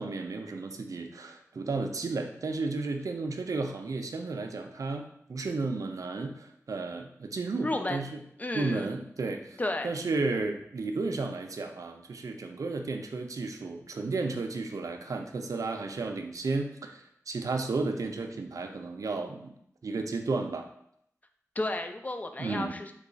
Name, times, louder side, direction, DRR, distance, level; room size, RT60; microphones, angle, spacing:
voice 1, 0.0-8.2 8.5-19.5 19.8-20.7 22.4-22.7, right 3 dB, 80° right, 5 dB, 0.4 m, -33 dB
voice 2, 7.6-8.0 8.4-8.9 9.6-9.9 21.6-22.9, left 2 dB, 30° left, 6 dB, 0.3 m, -32 dB
3.1 x 2.3 x 3.8 m, 0.72 s
wide cardioid pair, 85°, 6 cm